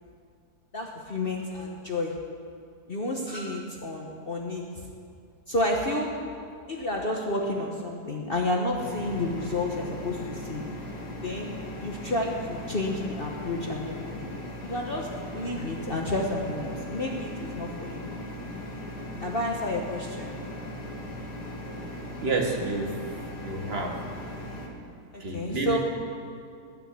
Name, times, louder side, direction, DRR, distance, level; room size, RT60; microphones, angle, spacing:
voice 1, 0.7-2.2 2.9-4.9 5.5-6.1 6.7-10.6 11.2-11.5 11.8-14.3 14.6-18.1 19.2-20.4 25.1-25.8, left 1 dB, 35° left, 0 dB, 1.3 m, -30 dB
sound 1, 8.8-24.7, left 1 dB, 75° left, 2.4 m, -38 dB
voice 2, 22.2-23.0 23.4-24.0 25.2-25.8, right 3 dB, 40° right, 1 dB, 1.9 m, -29 dB
19.5 x 6.7 x 8.7 m, 2.4 s
omnidirectional pair, 1.8 m